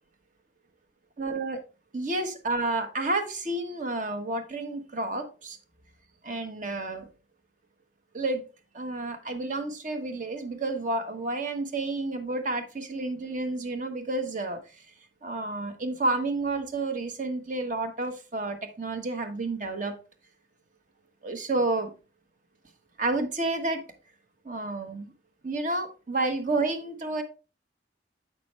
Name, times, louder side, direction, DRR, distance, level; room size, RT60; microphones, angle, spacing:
voice 1, 1.2-1.6 1.9-5.6 6.2-7.1 8.1-8.4 8.7-14.6 15.2-19.9 21.2-21.9 23.0-23.8 24.4-25.1 25.4-27.2, right 2 dB, 45° right, 6 dB, 1.3 m, -30 dB
8.3 x 6.0 x 3.2 m, 0.32 s
head